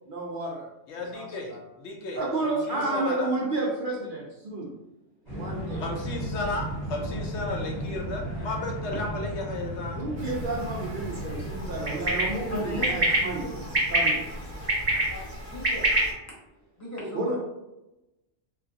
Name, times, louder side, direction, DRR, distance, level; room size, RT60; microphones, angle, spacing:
voice 1, 0.1-0.7 1.1-1.6 2.1-4.7 5.3-5.8 10.0-13.4 13.9-14.3 17.1-17.4, right 2 dB, 55° right, -3 dB, 0.6 m, -31 dB
voice 2, 0.9-3.3 5.8-10.0, left 2 dB, 70° left, 1 dB, 0.9 m, -34 dB
sound 1, 5.3-15.3, equal, 40° left, 1.3 m, -36 dB
sound 2, 10.2-16.1, right 1 dB, 30° right, 1.0 m, -28 dB
voice 3, 12.5-12.9 13.2-13.6 15.1-15.9 16.8-17.4, equal, 15° left, -5 dB, 0.7 m, -37 dB
2.8 x 2.4 x 2.5 m, 0.92 s
omnidirectional pair, 1.2 m